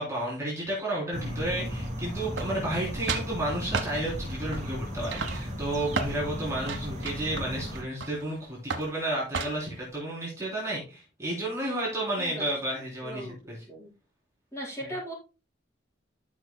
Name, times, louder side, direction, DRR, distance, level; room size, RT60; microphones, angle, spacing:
voice 1, 0.0-13.6 14.8-14.9, right 1 dB, 15° right, -5 dB, 3.4 m, -32 dB
sound 1, 1.1-7.8, equal, 40° right, 3.4 m, -35 dB
sound 2, 2.3-2.8 3.1-3.3 3.7-3.9 4.5-4.8 5.1-6.2 6.6-8.3 8.7-8.9 9.3-9.8, right 4 dB, 85° right, 1.1 m, -33 dB
voice 2, 13.0-13.4 13.7-13.9 14.5-15.1, equal, 15° left, -5 dB, 4.7 m, -37 dB
12.0 x 6.3 x 2.2 m, 0.30 s
head